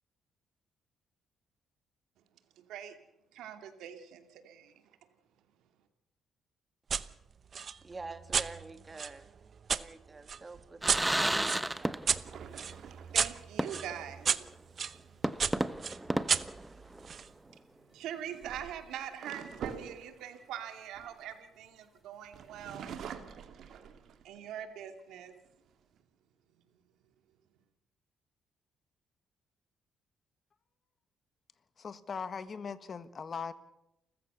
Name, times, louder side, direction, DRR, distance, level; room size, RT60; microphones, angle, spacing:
voice 1, 3.3-5.0 13.1-14.4 14.9-16.1 17.0-23.0 24.2-25.4, right 9 dB, 85° right, 7 dB, 2.6 m, -44 dB
sound 1, 6.9-7.1 7.5-9.8 10.3-15.0 15.4-17.3, right 6 dB, 45° right, 0.9 m, -33 dB
voice 2, 7.8-9.3 9.7-12.0, right 3 dB, 25° right, 9 dB, 2.5 m, -47 dB
sound 2, 10.8-12.4 12.7-12.8 13.6-14.1 14.5-14.6 15.2-17.2, right 1 dB, 10° right, 1.0 m, -33 dB
sound 3, 12.2-13.8 16.8-17.1 18.1-21.8 22.3-24.5 25.0-25.1 25.4-26.0, right 7 dB, 70° right, 2.2 m, -46 dB
voice 3, 31.8-33.5, left 6 dB, 45° left, 13 dB, 1.5 m, -39 dB
29.5 x 14.5 x 6.9 m, 0.91 s
cardioid pair, 90°, 0 cm